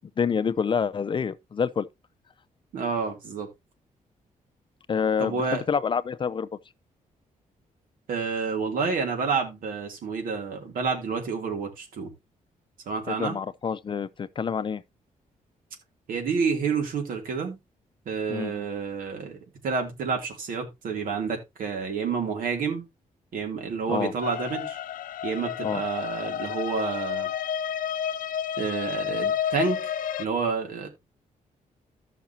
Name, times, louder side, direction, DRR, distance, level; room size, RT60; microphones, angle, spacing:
voice 1, 0.2-1.9 4.9-6.5 13.1-14.8 18.3-18.7 23.9-24.1 25.6-25.8, left 6 dB, 35° left, 0.5 m, -27 dB
voice 2, 2.7-3.5 5.2-5.6 8.1-12.1 12.9-13.4 16.1-17.6 18.1-19.4 19.6-22.8 23.3-24.8 25.2-27.3 28.6-29.9 30.2-30.9, right 5 dB, 80° right, 2.8 m, -29 dB
sound 1, 24.2-30.2, left 9 dB, 75° left, 0.6 m, -31 dB
15.0 x 5.9 x 2.8 m
cardioid pair, 125°, 14 cm